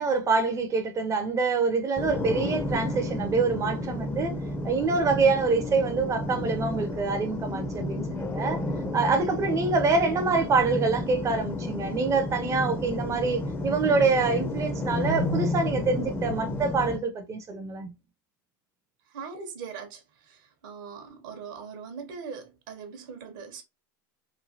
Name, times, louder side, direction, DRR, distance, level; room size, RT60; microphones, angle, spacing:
voice 1, 0.0-4.3 4.6-8.6 8.9-17.9, right 4 dB, 30° right, 0.5 m, -26 dB
sound 1, 2.0-17.0, left 1 dB, 20° left, 0.5 m, -31 dB
voice 2, 19.1-23.6, right 6 dB, 70° right, 0.8 m, -41 dB
3.1 x 2.2 x 2.6 m
hypercardioid pair, 105°, 11 cm